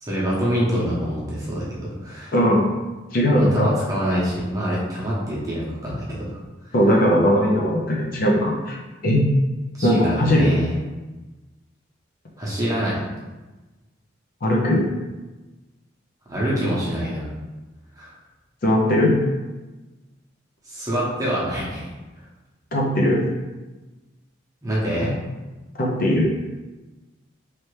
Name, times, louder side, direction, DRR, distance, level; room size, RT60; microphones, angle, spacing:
voice 1, 0.0-2.3 3.3-6.4 6.6-6.7 9.8-10.7 12.4-13.0 16.3-17.3 18.0-18.1 20.7-21.9 24.6-25.2, equal, 20° right, -6 dB, 0.9 m, -25 dB
voice 2, 2.3-2.8 3.1-3.7 6.7-8.8 9.0-9.2 9.8-10.5 14.4-14.8 18.6-19.1 22.7-23.3 25.8-26.3, equal, 45° left, -2 dB, 0.5 m, -19 dB
3.2 x 2.8 x 3.1 m, 1.2 s
head